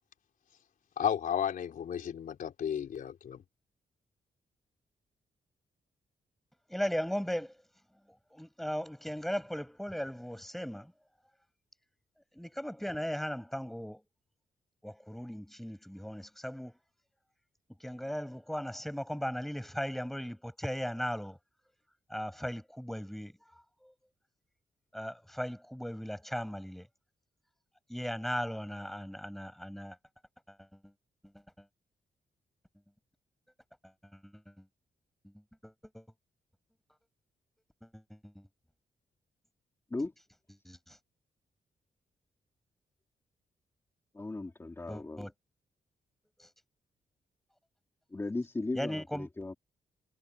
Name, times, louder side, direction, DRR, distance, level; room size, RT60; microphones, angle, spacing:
voice 1, 1.0-3.4, left 9 dB, 70° left, 4.0 m, -33 dB
voice 2, 6.7-7.6 8.3-10.9 12.3-14.0 14.8-16.8 17.8-21.4 22.1-23.3 23.8-23.9 24.9-26.9 27.9-30.0 34.1-34.6 35.6-36.0 37.8-38.5 40.6-41.0 44.9-45.3 46.4-46.5 48.7-49.3, equal, ahead, 6.3 m, -37 dB
voice 3, 44.1-45.3 48.1-49.5, left 2 dB, 15° left, 3.5 m, -37 dB
wide cardioid pair, 170°, 15 cm